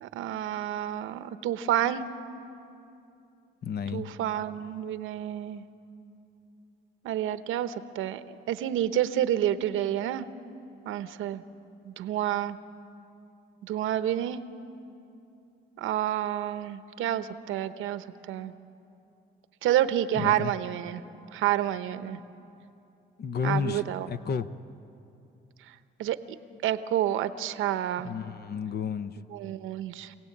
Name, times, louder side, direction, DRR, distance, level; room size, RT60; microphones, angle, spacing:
voice 1, 0.0-2.1 3.9-5.6 7.0-10.3 10.8-11.4 11.8-12.6 13.6-14.4 15.8-18.5 19.6-21.0 21.3-22.2 23.4-24.1 26.0-26.2 26.6-28.1 29.3-30.1, right 11 dB, 90° right, 12 dB, 0.9 m, -29 dB
voice 2, 3.6-4.1 20.1-20.5 23.2-24.5 28.0-29.2, left 6 dB, 55° left, 12 dB, 0.8 m, -31 dB
26.0 x 17.5 x 8.6 m, 2.7 s
cardioid pair, 90°, 20 cm